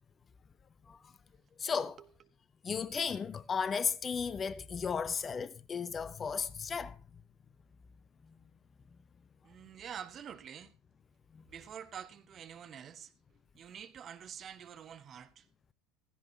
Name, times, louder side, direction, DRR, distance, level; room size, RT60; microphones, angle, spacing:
voice 1, 1.6-2.0 2.6-7.0 11.3-11.4, left 6 dB, 25° left, 0.7 m, -35 dB
voice 2, 9.4-10.7 11.5-13.1 13.5-15.4, right 8 dB, 35° right, 1.3 m, -47 dB
16.0 x 15.5 x 2.8 m
figure-of-eight pair, 75°, 0 cm